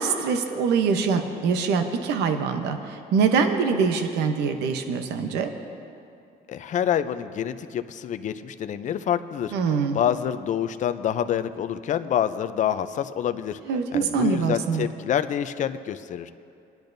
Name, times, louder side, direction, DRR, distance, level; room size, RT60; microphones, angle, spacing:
voice 1, 0.0-5.5 9.5-10.0 13.7-14.9, right 5 dB, 85° right, 6 dB, 0.9 m, -24 dB
voice 2, 6.5-13.6 13.9-16.3, left 9 dB, 45° left, 11 dB, 0.5 m, -27 dB
22.5 x 10.5 x 2.7 m, 2.6 s
cardioid pair, 110°, 17 cm